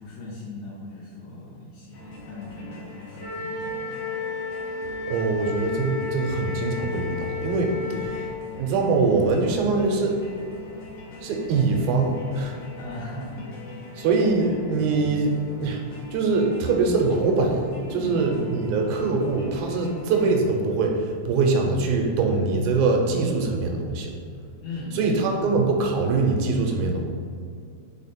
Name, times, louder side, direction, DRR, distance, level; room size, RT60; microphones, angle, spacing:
voice 1, 0.0-4.0 7.8-8.1 12.8-14.1 14.4-14.5 15.0-15.3 17.9-18.9 24.6-25.5, left 2 dB, 80° left, -9 dB, 2.7 m, -39 dB
sound 1, 1.9-20.4, left 2 dB, 65° left, 1.9 m, -43 dB
Wind instrument woodwind instrument, 3.2-8.3, left 5 dB, 40° right, 1.6 m, -32 dB
voice 2, 4.9-7.7 8.6-10.2 11.2-12.6 14.0-15.8 16.1-17.6 17.9-24.1 24.9-27.0, right 3 dB, 85° right, 2 dB, 2.2 m, -23 dB
5.1 x 4.9 x 4.2 m, 2.3 s
omnidirectional pair, 3.5 m